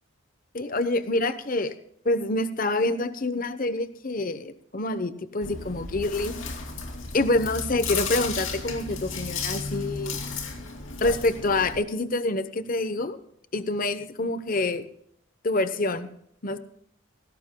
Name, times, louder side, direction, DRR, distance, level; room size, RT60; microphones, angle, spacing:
voice 1, 0.5-1.8 2.0-6.4 7.1-10.2 11.0-13.2 13.5-14.8 15.4-16.1 16.4-16.6, left 2 dB, 45° left, 12 dB, 0.8 m, -26 dB
Chewing mastication, 5.4-11.8, left 4 dB, 75° left, 2.6 m, -33 dB
19.5 x 17.0 x 2.2 m, 0.72 s
head